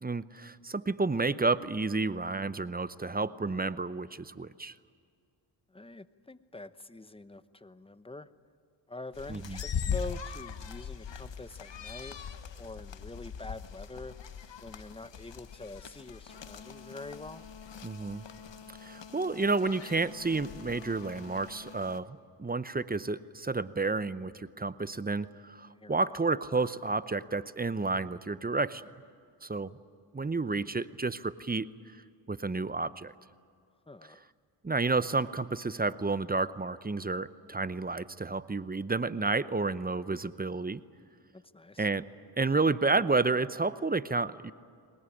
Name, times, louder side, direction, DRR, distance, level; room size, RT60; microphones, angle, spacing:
voice 1, 0.0-4.7 9.3-9.6 17.8-18.3 18.8-28.8 29.4-29.8 30.1-31.7 32.3-33.1 34.6-40.8 41.8-42.1 42.4-44.5, right 3 dB, 20° right, 15 dB, 0.7 m, -30 dB
voice 2, 5.7-8.3 8.9-12.2 12.6-14.2 14.6-17.4 25.7-26.0 33.9-34.2 41.3-41.9, left 2 dB, 10° left, 13 dB, 0.8 m, -45 dB
sound 1, 9.1-22.0, left 7 dB, 60° left, 1.3 m, -41 dB
21.5 x 19.5 x 10.0 m, 2.3 s
cardioid pair, 65°, 48 cm